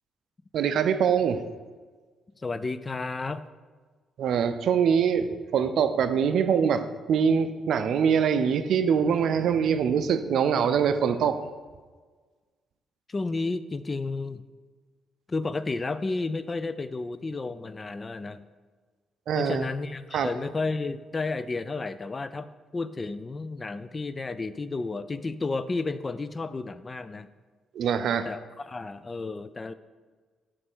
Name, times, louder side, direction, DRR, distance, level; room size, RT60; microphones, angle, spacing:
voice 1, 0.5-1.4 4.2-11.4 19.3-19.7 20.1-20.3 27.7-28.3, right 7 dB, 70° right, 10 dB, 0.4 m, -24 dB
voice 2, 2.4-3.4 13.1-14.4 15.3-18.5 19.4-27.3 28.2-29.7, left 3 dB, 30° left, 13 dB, 0.3 m, -32 dB
7.6 x 3.2 x 6.1 m, 1.4 s
cardioid pair, 90°, 0 cm